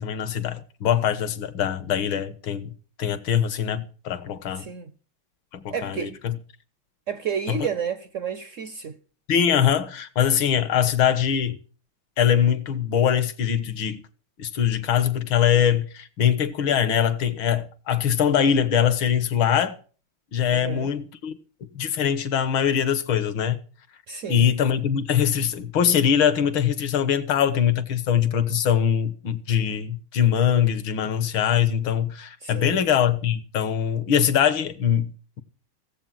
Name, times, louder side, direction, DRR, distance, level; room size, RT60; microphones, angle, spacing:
voice 1, 0.0-2.7 3.0-4.7 5.5-6.4 7.5-7.6 9.3-11.6 12.2-14.0 14.4-19.8 20.3-21.4 21.7-23.6 24.3-35.4, left 9 dB, 70° left, 2.0 m, -22 dB
voice 2, 4.5-4.9 5.7-6.2 7.1-9.0 20.5-20.9 24.1-24.5 32.4-32.8, right 7 dB, 65° right, 0.7 m, -31 dB
17.0 x 8.2 x 7.4 m
omnidirectional pair, 2.3 m